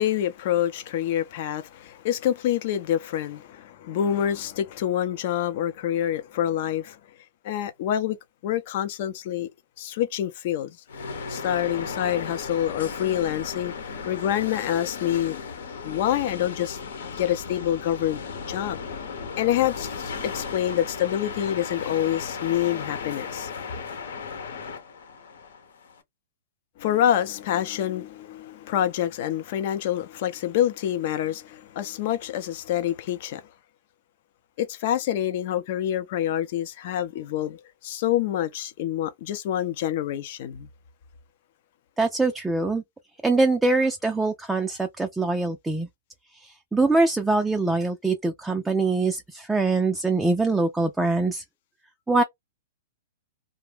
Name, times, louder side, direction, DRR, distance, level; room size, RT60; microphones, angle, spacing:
voice 1, 0.0-7.0 7.4-8.2 8.4-9.5 9.8-10.8 11.3-13.7 14.1-16.8 17.2-18.8 19.4-23.9 26.8-33.4 34.6-40.7, left 11 dB, 50° left, 0.6 m, -27 dB
sound 1, 10.9-26.0, left 5 dB, 75° left, 0.9 m, -35 dB
voice 2, 42.0-42.8 43.2-45.9 46.3-51.4 52.1-52.2, right 3 dB, 5° right, 0.4 m, -23 dB
2.6 x 2.1 x 3.3 m
hypercardioid pair, 135°, 0 cm